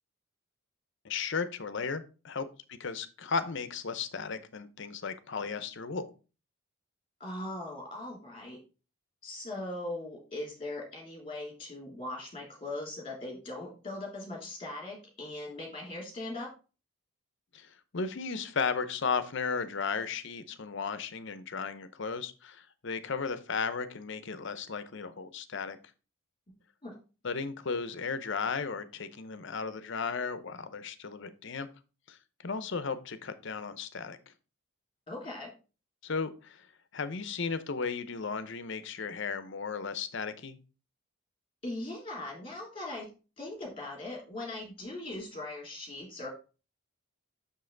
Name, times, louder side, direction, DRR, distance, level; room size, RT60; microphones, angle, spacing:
voice 1, 1.0-6.1 17.5-25.8 27.2-31.7 32.1-32.2 32.4-34.3 36.0-36.7 36.9-40.6, left 5 dB, 55° left, 12 dB, 0.6 m, -35 dB
voice 2, 7.2-8.6 9.2-16.5 26.8-26.9 35.1-35.5 41.6-43.1 43.4-46.3, left 2 dB, 25° left, -1 dB, 2.7 m, -40 dB
6.5 x 5.5 x 3.8 m, 0.33 s
head